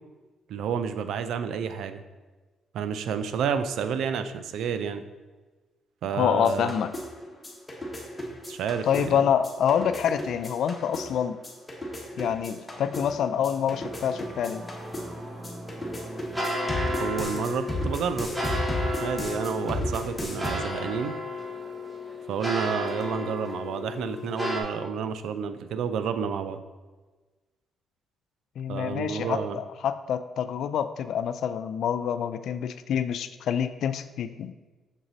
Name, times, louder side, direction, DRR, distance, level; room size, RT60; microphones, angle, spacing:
voice 1, 0.5-2.0 2.7-5.0 6.0-6.7 8.5-9.2 17.0-18.3 19.0-21.2 22.3-26.6 28.7-29.6, right 7 dB, 80° right, 10 dB, 0.4 m, -30 dB
voice 2, 6.2-6.9 8.9-11.4 12.2-14.6 28.6-34.5, left 8 dB, 70° left, 11 dB, 0.3 m, -27 dB
sound 1, 6.4-20.5, equal, 15° left, 1.4 m, -35 dB
Singing / Musical instrument, 12.1-21.6, right 1 dB, 40° right, 1.3 m, -46 dB
sound 2, 13.7-24.6, left 1 dB, 15° right, 1.4 m, -33 dB
6.4 x 4.0 x 3.9 m, 1.3 s
cardioid pair, 90°, 0 cm